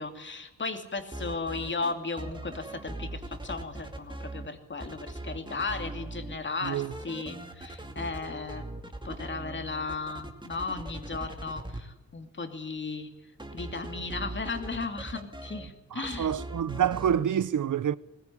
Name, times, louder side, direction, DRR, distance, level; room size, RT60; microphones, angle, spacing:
voice 1, 0.0-8.7 9.0-13.1 13.5-16.3, left 3 dB, 40° left, 2.5 m, -35 dB
sound 1, 1.0-4.5 4.8-6.4 6.6-11.8 13.4-15.7 16.0-17.2, right 2 dB, 15° right, 2.2 m, -40 dB
voice 2, 6.6-6.9 15.9-17.9, right 9 dB, 90° right, 0.8 m, -27 dB
21.0 x 19.5 x 9.9 m
wide cardioid pair, 175°, 30 cm